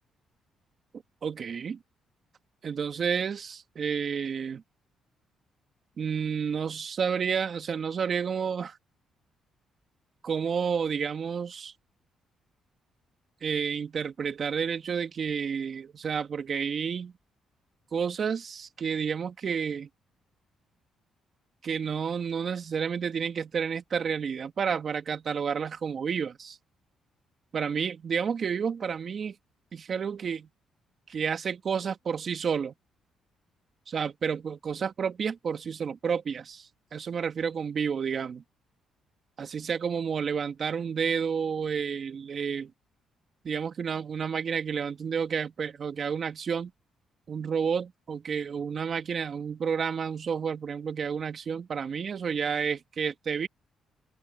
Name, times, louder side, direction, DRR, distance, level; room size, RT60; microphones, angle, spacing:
voice 1, 1.2-1.8 2.6-4.6 6.0-8.8 10.2-11.7 13.4-17.1 17.9-19.9 21.6-26.6 27.5-29.4 29.7-30.5 31.1-32.7 33.9-38.4 39.4-42.7 43.4-46.7 47.3-53.5, right 6 dB, 50° right, 2.4 m, -30 dB
cardioid pair, 90°, 0 cm